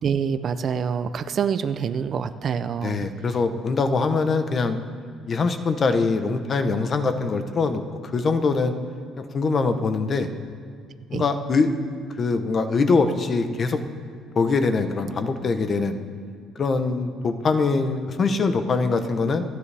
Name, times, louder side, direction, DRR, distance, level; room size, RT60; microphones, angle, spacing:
voice 1, 0.0-3.1 11.1-11.2, right 7 dB, 40° right, 12 dB, 0.4 m, -26 dB
voice 2, 2.8-4.8 5.3-7.8 8.1-8.7 9.2-10.3 11.1-11.7 12.2-13.8 14.4-16.0 16.6-19.4, left 4 dB, 30° left, 9 dB, 0.8 m, -23 dB
27.0 x 9.8 x 3.4 m, 2.1 s
cardioid pair, 160°, 0 cm